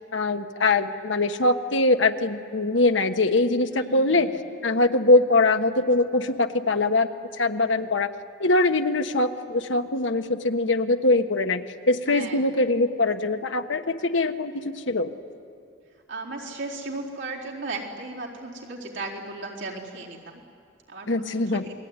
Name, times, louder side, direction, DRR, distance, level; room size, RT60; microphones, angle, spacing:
voice 1, 0.1-4.3 4.6-7.1 7.4-8.1 8.4-11.6 11.9-15.1 21.1-21.6, left 2 dB, 85° left, 7 dB, 1.3 m, -22 dB
voice 2, 3.7-4.2 12.0-12.4 16.1-20.4 20.9-21.7, right 2 dB, 85° right, -3 dB, 4.4 m, -36 dB
29.0 x 21.0 x 9.8 m, 2.3 s
head